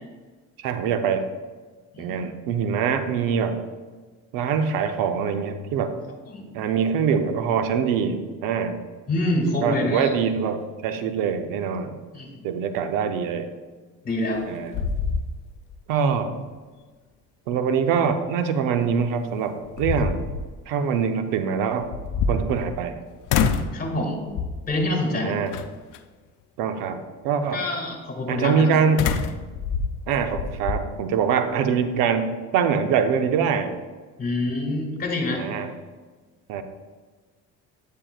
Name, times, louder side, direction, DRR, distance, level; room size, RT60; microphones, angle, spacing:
voice 1, 0.6-1.2 2.0-3.6 4.3-5.9 6.5-8.8 9.6-11.9 12.4-13.5 14.5-14.7 15.9-16.3 17.5-20.2 20.7-21.9 22.3-22.9 25.1-25.5 26.6-27.6 28.3-29.0 30.1-33.7 35.3-35.7 36.5-36.6, right 6 dB, 75° right, 8 dB, 0.7 m, -24 dB
voice 2, 9.1-10.1 12.1-12.4 14.0-14.4 23.7-24.2 24.7-25.4 27.5-28.7 34.2-35.4, left 1 dB, 25° left, 1 dB, 2.1 m, -26 dB
sound 1, 14.1-14.4 14.7-15.7 16.1-16.2 18.9-19.0 19.6-20.5 21.8-22.9 23.3-23.8 24.3-24.7 25.5-26.0 29.0-30.8, left 5 dB, 65° left, 0.6 m, -26 dB
8.8 x 8.4 x 2.4 m, 1.4 s
supercardioid pair, 90°, 33 cm